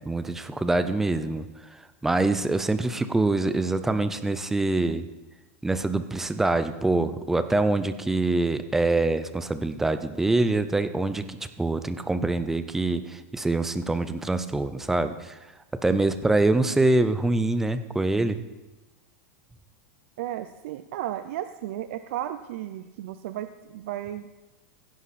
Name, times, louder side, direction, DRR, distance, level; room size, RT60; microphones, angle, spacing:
voice 1, 0.1-1.5 2.0-5.0 5.6-15.4 15.8-18.4, right 2 dB, 5° right, 11 dB, 0.5 m, -25 dB
voice 2, 20.2-24.3, right 12 dB, 55° right, 10 dB, 0.5 m, -34 dB
16.0 x 9.7 x 4.2 m, 1.1 s
supercardioid pair, 165°, 8 cm